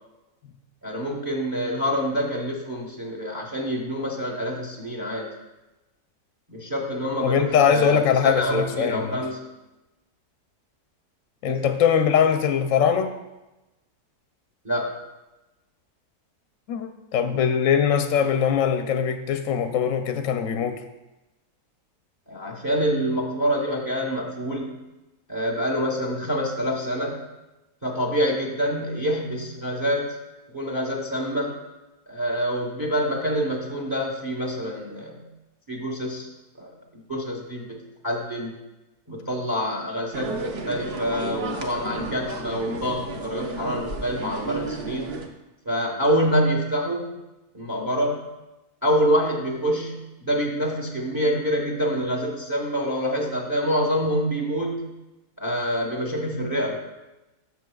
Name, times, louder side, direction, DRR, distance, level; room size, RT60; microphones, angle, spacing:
voice 1, 0.8-5.3 6.5-9.4 11.5-11.7 14.6-14.9 22.3-24.8 25.3-27.2 27.8-30.2 30.5-31.6 32.1-35.2 35.7-36.3 36.6-37.8 38.0-38.5 39.1-45.1 45.6-47.1 47.5-48.2 48.8-54.9 55.4-56.8, equal, 15° right, 0 dB, 0.8 m, -26 dB
voice 2, 7.2-9.2 11.4-13.1 16.7-20.8, left 8 dB, 70° left, 7 dB, 0.9 m, -22 dB
sound 1, 40.1-45.3, right 3 dB, 50° right, 0.9 m, -33 dB
12.5 x 6.7 x 2.3 m, 1.0 s
omnidirectional pair, 1.7 m